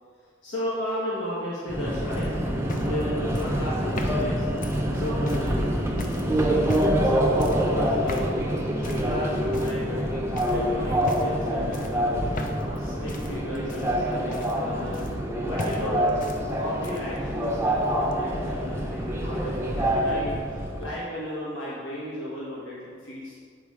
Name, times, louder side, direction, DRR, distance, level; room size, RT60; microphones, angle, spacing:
voice 1, 0.4-2.3 2.8-4.5 4.9-5.9 6.3-6.6 7.0-8.4 8.8-10.1 10.4-12.1 12.6-15.0 15.4-16.2 16.6-23.4, left 1 dB, 70° left, -7 dB, 1.3 m, -35 dB
Subway metro underground, 1.7-20.9, equal, 15° right, 0.7 m, -26 dB
sound 1, 2.1-5.5 6.0-6.3 6.6-7.0 7.4-7.7 8.1-8.4 8.8-9.1 9.5-10.0 10.4-10.6 11.0-11.4 11.7-12.8 13.1-15.3 15.6-16.4 16.7-17.2 18.1-18.2, left 2 dB, 45° left, 0.6 m, -37 dB
8.7 x 4.1 x 4.8 m, 2.1 s
head